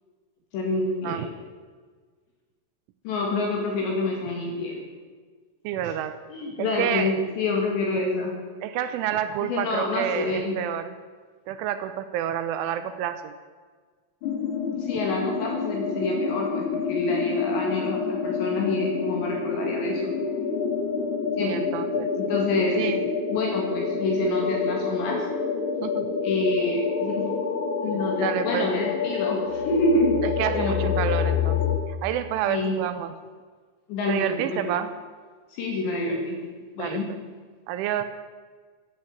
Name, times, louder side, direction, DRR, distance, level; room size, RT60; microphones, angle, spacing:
voice 1, 0.5-1.3 3.0-4.8 6.3-8.3 9.5-10.6 14.7-20.1 21.4-21.6 22.2-22.8 23.3-25.3 26.2-27.3 27.8-30.2 30.5-30.9 32.5-32.8 33.9-34.7 35.5-36.4 36.8-37.1, left 2 dB, 65° left, 0 dB, 4.1 m, -27 dB
voice 2, 5.6-6.2 6.6-7.1 8.6-11.0 11.5-13.3 21.4-22.1 22.8-23.0 25.8-26.1 28.2-28.7 30.2-33.1 34.1-34.9 36.8-37.2 37.7-38.1, right 10 dB, 85° right, 10 dB, 3.0 m, -29 dB
sound 1, 14.2-31.8, left 5 dB, 80° left, 1.7 m, -28 dB
15.0 x 10.0 x 8.1 m, 1.5 s
omnidirectional pair, 5.8 m